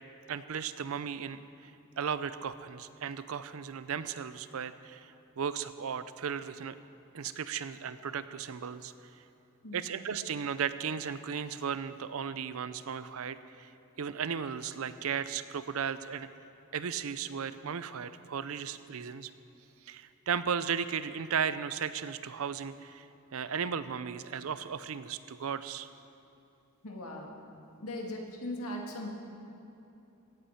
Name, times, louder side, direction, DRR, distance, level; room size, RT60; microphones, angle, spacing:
voice 1, 0.3-1.7 2.0-6.7 7.1-8.9 9.7-13.7 14.0-16.3 16.7-19.3 19.9-23.1 23.3-25.9, right 7 dB, 70° right, 13 dB, 0.5 m, -35 dB
voice 2, 9.6-10.0 26.8-27.4 27.8-29.1, left 1 dB, 85° left, 0 dB, 2.0 m, -39 dB
16.5 x 8.3 x 5.7 m, 2.9 s
head